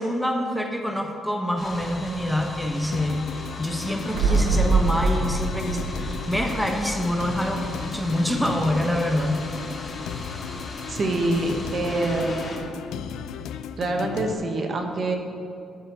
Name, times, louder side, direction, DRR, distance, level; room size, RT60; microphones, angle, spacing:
voice 1, 0.0-3.3 3.6-9.4 9.6-9.9, equal, ahead, 3 dB, 0.9 m, -26 dB
sound 1, 1.6-12.6, left 2 dB, 30° left, 1.8 m, -38 dB
sound 2, 2.9-14.3, left 8 dB, 85° left, 0.4 m, -36 dB
sound 3, 4.1-7.9 8.1-8.2, right 3 dB, 85° right, 0.8 m, -25 dB
voice 2, 10.9-12.7 13.8-15.1, right 2 dB, 45° right, 3 dB, 1.2 m, -26 dB
12.0 x 4.4 x 6.7 m, 2.5 s
cardioid pair, 90°, 0 cm